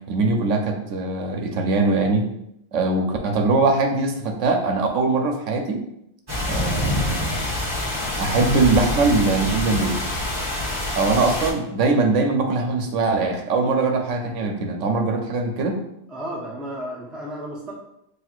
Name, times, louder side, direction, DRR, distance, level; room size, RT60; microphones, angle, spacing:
voice 1, 0.1-2.3 2.7-5.8 6.5-7.2 8.2-10.0 10.9-15.8, right 3 dB, 80° right, 4 dB, 0.9 m, -21 dB
sound 1, 6.3-11.5, left 1 dB, 20° right, 0.9 m, -26 dB
voice 2, 16.1-17.7, equal, ahead, -3 dB, 0.5 m, -33 dB
5.9 x 2.7 x 2.4 m, 0.80 s
omnidirectional pair, 1.3 m